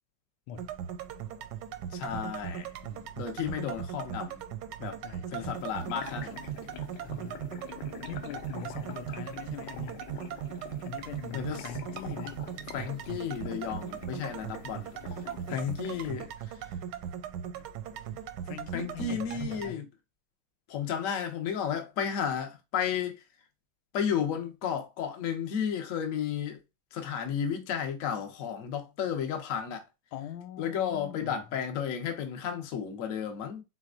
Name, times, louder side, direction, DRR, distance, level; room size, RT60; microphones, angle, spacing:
sound 1, 0.5-19.7, right 9 dB, 70° right, 1.1 m, -39 dB
voice 1, 1.9-2.7 3.2-4.4 4.8-5.0 5.3-6.4 11.3-11.7 12.7-14.9 15.5-16.3 18.7-19.9 20.7-23.2 23.9-26.6 26.9-29.8 30.6-33.6, left 8 dB, 50° left, 1.1 m, -33 dB
voice 2, 5.0-5.5 7.0-7.6 8.1-10.1 10.8-12.4 15.5-15.7 16.6-16.8 17.6-17.7 18.4-19.9 30.1-31.5, left 9 dB, 90° left, 1.4 m, -43 dB
sound 2, 5.5-16.1, left 10 dB, 70° left, 1.3 m, -46 dB
4.3 x 3.8 x 2.4 m
omnidirectional pair, 2.3 m